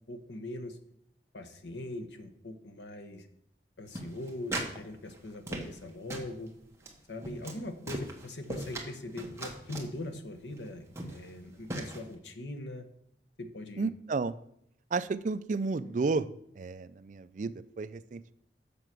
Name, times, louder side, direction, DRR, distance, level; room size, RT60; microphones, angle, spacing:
voice 1, 0.1-0.8 1.3-3.3 3.8-6.5 7.1-12.8 13.4-13.9, left 1 dB, 85° left, 7 dB, 1.1 m, -41 dB
sound 1, 4.0-4.8 5.1-5.8 6.1-6.3 6.8-6.9 7.2-7.6 7.9-8.9 9.2-9.9 10.6-10.7 11.0-11.3 11.7-12.0, right 1 dB, 15° right, 1.3 m, -38 dB
voice 2, 13.8-14.4 14.9-16.3 16.6-18.3, right 4 dB, 45° right, 15 dB, 0.4 m, -32 dB
7.0 x 6.7 x 6.1 m, 0.72 s
head